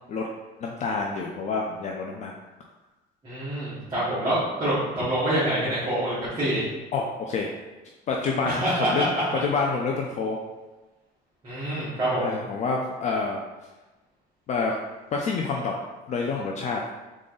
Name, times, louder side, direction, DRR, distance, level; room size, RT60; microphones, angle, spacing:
voice 1, 0.6-2.3 6.9-7.5 8.1-9.1 9.4-10.4 12.2-13.4 14.5-14.7 15.1-15.7 16.1-16.8, left 4 dB, 35° left, 0 dB, 0.4 m, -27 dB
voice 2, 3.2-6.6 8.4-9.2 11.4-12.4, right 1 dB, 25° right, -11 dB, 1.5 m, -26 dB
3.7 x 3.7 x 3.9 m, 1.1 s
cardioid pair, 160°, 20 cm